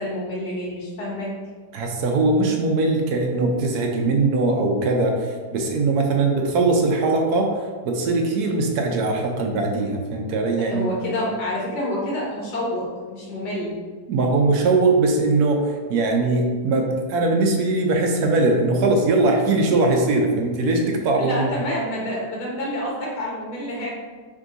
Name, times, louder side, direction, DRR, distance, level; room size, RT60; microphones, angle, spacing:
voice 1, 0.0-1.3 10.6-13.8 21.2-23.9, left 1 dB, 65° left, -4 dB, 1.8 m, -28 dB
voice 2, 1.7-7.5 7.8-10.9 14.1-21.5, right 3 dB, 65° right, 2 dB, 1.1 m, -21 dB
3.6 x 3.6 x 3.8 m, 1.5 s
omnidirectional pair, 1.9 m